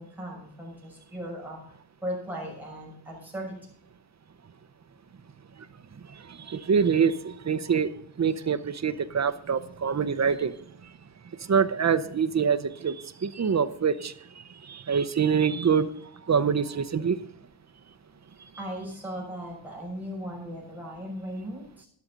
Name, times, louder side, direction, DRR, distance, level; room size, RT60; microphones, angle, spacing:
voice 1, 0.0-1.6 2.0-3.6 18.6-21.9, equal, 5° right, 6.3 m, -37 dB
voice 2, 6.1-7.9 8.2-10.5 11.5-15.9 16.3-17.2, right 6 dB, 35° right, 0.7 m, -25 dB
13.0 x 11.0 x 3.9 m
wide cardioid pair, 150°, 46 cm